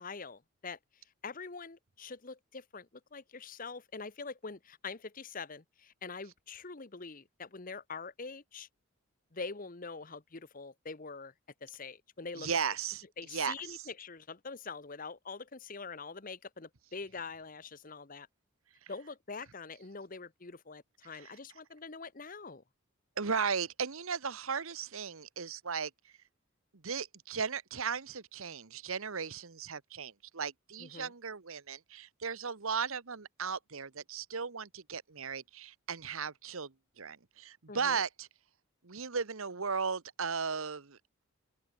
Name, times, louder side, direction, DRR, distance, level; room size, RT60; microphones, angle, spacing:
voice 1, 0.0-8.7 9.3-11.3 11.6-12.5 13.2-18.3 18.9-22.6 30.8-31.1 37.7-38.0, left 4 dB, 40° left, 1.0 m, -44 dB
voice 2, 12.4-13.0 13.3-13.8 23.2-25.9 26.8-38.3 38.8-41.2, right 6 dB, 70° right, 1.1 m, -36 dB
open air
head